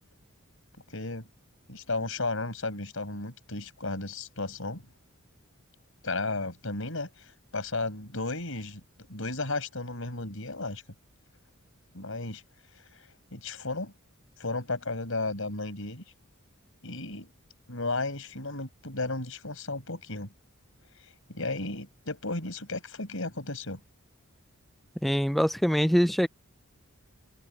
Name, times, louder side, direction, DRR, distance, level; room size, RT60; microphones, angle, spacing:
voice 1, 0.9-1.3 1.7-4.8 6.0-8.8 9.1-10.8 11.9-12.4 12.9-13.9 14.4-16.0 16.8-17.3 17.7-20.3 21.3-23.8 25.7-25.8, left 2 dB, 65° left, 5.9 m, -34 dB
voice 2, 25.0-26.3, equal, ahead, 0.5 m, -23 dB
open air
head